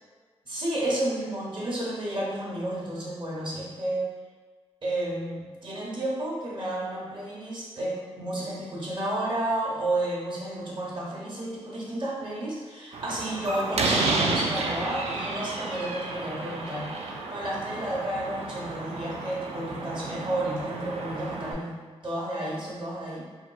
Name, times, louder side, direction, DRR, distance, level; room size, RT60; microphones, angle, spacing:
voice 1, 0.4-4.1 4.8-16.9 17.3-23.2, right 1 dB, 45° right, -5 dB, 0.9 m, -31 dB
Slam, 12.9-21.5, right 3 dB, 65° right, 0.4 m, -31 dB
2.9 x 2.5 x 2.2 m, 1.5 s
cardioid pair, 50°, 11 cm